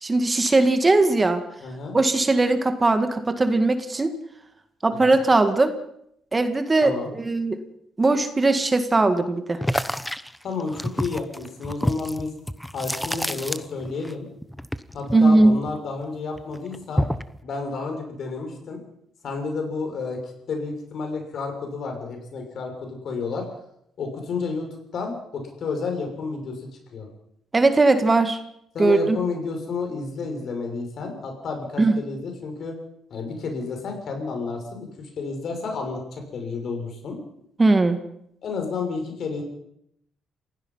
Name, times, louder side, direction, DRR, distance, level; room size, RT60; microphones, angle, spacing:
voice 1, 0.0-1.4 1.9-4.1 4.8-5.7 6.3-7.6 8.0-9.6 15.1-15.6 27.5-28.4 28.8-29.2 31.8-31.9 37.6-38.0, right 2 dB, 25° right, 8 dB, 1.9 m, -19 dB
voice 2, 1.6-2.0 5.0-5.2 6.8-7.1 10.4-12.3 12.7-14.3 14.9-17.0 17.4-18.8 19.2-23.4 24.0-24.7 24.9-27.1 28.7-32.7 33.1-37.2 38.4-39.4, left 4 dB, 60° left, 4 dB, 6.7 m, -31 dB
sound 1, 9.6-14.1 14.4-16.0 16.4-17.4, equal, 5° left, 1.0 m, -28 dB
28.5 x 16.5 x 5.7 m, 0.75 s
cardioid pair, 90°, 0 cm